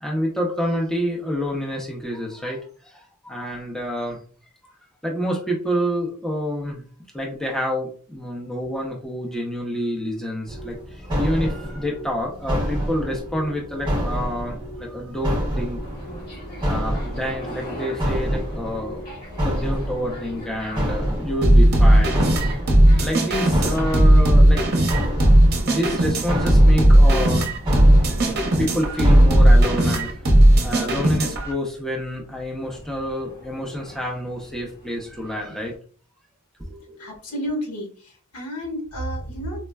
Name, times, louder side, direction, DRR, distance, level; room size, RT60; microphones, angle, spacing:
voice 1, 0.0-4.2 4.6-4.7 5.0-6.9 7.1-15.8 16.6-19.1 19.4-22.5 23.0-25.0 25.3-27.5 28.0-30.2 30.6-35.8 36.7-37.0, equal, ahead, -2 dB, 0.5 m, -28 dB
sound 1, 10.5-30.4, equal, 20° right, 0.9 m, -28 dB
sound 2, 15.8-35.8, equal, 40° left, 1.5 m, -43 dB
sound 3, 21.4-31.5, right 1 dB, 45° right, 0.7 m, -15 dB
voice 2, 37.0-39.7, equal, 85° left, 0 dB, 1.2 m, -31 dB
4.1 x 2.1 x 2.2 m, 0.42 s
head